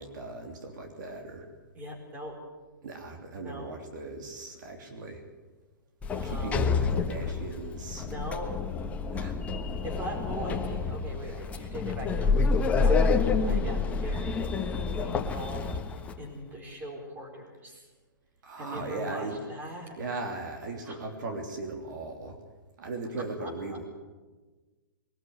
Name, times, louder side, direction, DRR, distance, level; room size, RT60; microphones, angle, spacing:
voice 1, 0.0-1.5 2.8-5.2 6.2-8.1 9.1-9.4 11.2-11.4 18.4-19.4 20.0-22.4 22.8-23.8, right 3 dB, 60° right, 4 dB, 3.3 m, -38 dB
voice 2, 1.7-2.3 3.3-3.7 6.1-6.6 7.9-8.6 9.8-17.9 18.6-19.9 20.8-21.0 23.4-23.8, equal, 15° right, 2 dB, 4.6 m, -41 dB
Sliding door, 6.0-16.2, left 4 dB, 10° left, 1.3 m, -28 dB
21.5 x 13.5 x 9.6 m, 1.3 s
hypercardioid pair, 155°, 11 cm